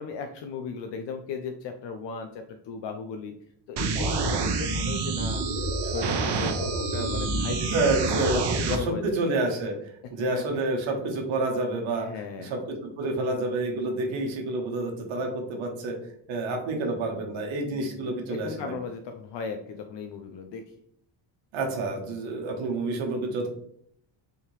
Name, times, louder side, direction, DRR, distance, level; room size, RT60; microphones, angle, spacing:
voice 1, 0.0-3.3 3.7-5.4 5.8-7.9 8.2-9.1 10.2-10.4 12.0-12.6 17.7-20.6, left 5 dB, 65° left, 5 dB, 0.5 m, -36 dB
sound 1, 3.8-8.8, right 4 dB, 60° right, 0.7 m, -27 dB
Wind instrument woodwind instrument, 4.3-8.6, left 3 dB, 45° right, 1.2 m, -42 dB
voice 2, 7.7-8.7 9.2-9.7 10.1-12.1 12.5-15.9 16.3-18.7 21.5-23.5, right 2 dB, 80° right, 2 dB, 1.0 m, -28 dB
3.4 x 2.7 x 3.0 m, 0.68 s
cardioid pair, 85°, 46 cm